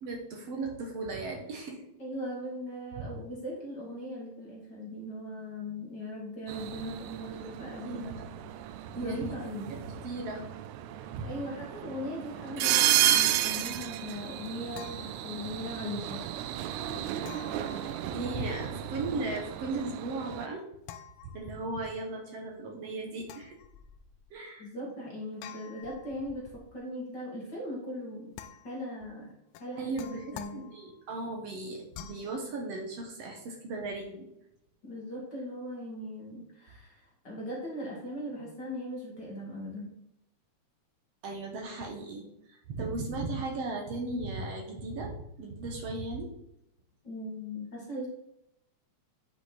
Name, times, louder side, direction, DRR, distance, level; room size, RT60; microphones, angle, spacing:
voice 1, 0.0-1.8 7.8-8.3 8.9-9.4 9.7-10.5 11.1-11.3 17.5-20.6 21.2-23.6 24.3-24.7 29.8-34.3 41.2-46.3, right 2 dB, 60° right, 1 dB, 2.1 m, -37 dB
voice 2, 2.0-8.2 8.6-9.7 11.0-16.2 24.6-28.3 28.6-29.3 29.6-30.6 34.8-39.9 47.0-48.1, equal, 40° left, -3 dB, 2.3 m, -39 dB
sound 1, 6.5-20.5, right 12 dB, 85° right, 2.0 m, -32 dB
sound 2, 14.2-15.8 17.2-18.6 20.8-21.9 23.2-24.3 25.4-26.8 28.3-29.0 29.5-31.1 31.9-32.4, left 10 dB, 80° left, 1.9 m, -49 dB
10.0 x 5.3 x 4.1 m, 0.78 s
omnidirectional pair, 3.4 m